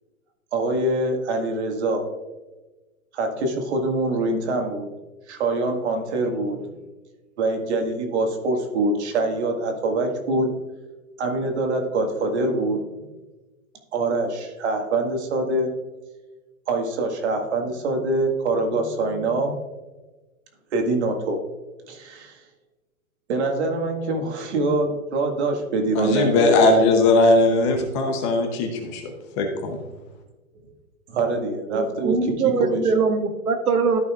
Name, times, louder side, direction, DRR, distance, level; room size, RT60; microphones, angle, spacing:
voice 1, 0.5-2.0 3.1-4.9 5.3-6.7 7.4-10.5 11.2-12.8 13.9-15.7 16.7-19.6 20.7-21.4 21.9-22.4 23.3-26.7 31.1-32.9, right 2 dB, 50° right, 3 dB, 1.9 m, -24 dB
voice 2, 25.9-29.8, left 2 dB, 20° left, 3 dB, 0.8 m, -19 dB
voice 3, 31.7-34.0, right 5 dB, 90° right, 6 dB, 1.5 m, -22 dB
13.5 x 5.6 x 2.4 m, 1.2 s
hypercardioid pair, 155°, 43 cm